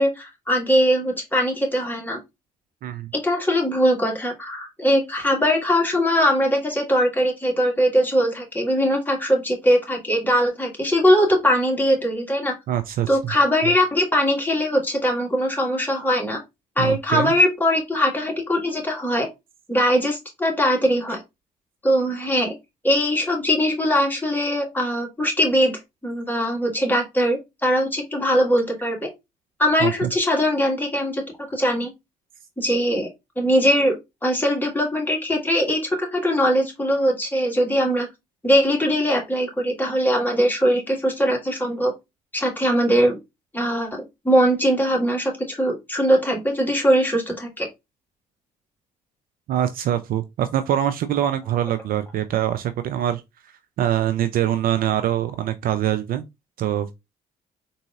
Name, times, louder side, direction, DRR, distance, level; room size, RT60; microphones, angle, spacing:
voice 1, 0.0-2.2 3.1-12.5 13.1-16.4 16.8-19.3 19.7-21.2 21.8-22.5 22.8-29.1 29.6-31.2 31.5-31.9 32.6-33.1 33.4-34.0 34.2-38.1 38.4-41.9 42.3-43.2 43.5-47.7, equal, 10° left, 1.6 m, -21 dB
voice 2, 12.7-13.1 16.8-17.3 29.8-30.1 49.5-53.2 53.8-56.2 56.6-56.9, right 11 dB, 50° right, 0.4 m, -23 dB
3.8 x 2.7 x 2.4 m
hypercardioid pair, 50°, 19 cm